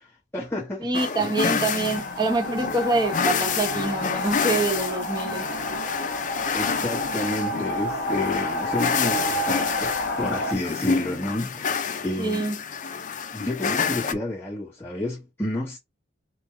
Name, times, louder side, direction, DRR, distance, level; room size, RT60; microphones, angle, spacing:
voice 1, 0.0-0.9 6.5-12.5 13.3-15.8, left 1 dB, 10° left, 1.2 m, -31 dB
voice 2, 0.8-5.5 12.2-12.6, right 2 dB, 20° right, 1.0 m, -25 dB
sound 1, 0.9-14.1, left 6 dB, 45° left, 0.4 m, -28 dB
sound 2, 1.4-10.5, left 1 dB, 60° left, 1.1 m, -30 dB
4.3 x 2.2 x 4.5 m
head